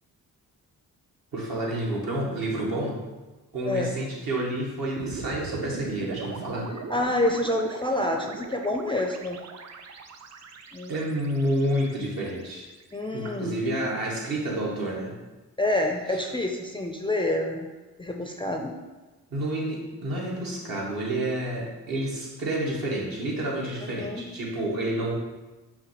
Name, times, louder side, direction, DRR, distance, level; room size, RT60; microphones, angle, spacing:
voice 1, 1.3-3.0 3.5-6.7 10.9-12.7 13.1-15.2 19.3-25.2, right 1 dB, 65° right, -3 dB, 1.2 m, -29 dB
voice 2, 3.6-4.0 6.9-9.4 10.7-10.9 12.9-13.6 15.6-17.7 18.0-18.7 23.9-24.3, left 1 dB, 15° left, 2 dB, 0.3 m, -27 dB
sound 1, 5.0-13.3, right 5 dB, 45° right, 0.5 m, -39 dB
5.5 x 2.3 x 3.0 m, 1.2 s
supercardioid pair, 55°, 38 cm